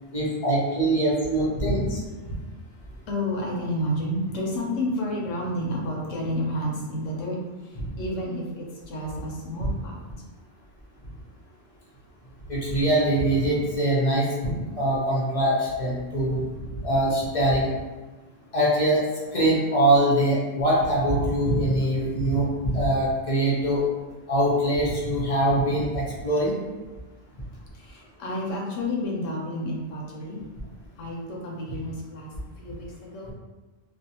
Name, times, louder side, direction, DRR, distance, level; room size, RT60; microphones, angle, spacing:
voice 1, 0.1-2.0 2.3-2.4 9.6-9.7 12.5-16.4 16.7-17.7 18.5-19.0 19.3-23.8 24.3-26.6, right 1 dB, 40° left, -6 dB, 0.5 m, -23 dB
voice 2, 2.2-9.9 27.7-30.4 31.0-33.3, left 1 dB, 80° left, -2 dB, 0.9 m, -31 dB
2.5 x 2.0 x 2.7 m, 1.2 s
omnidirectional pair, 1.3 m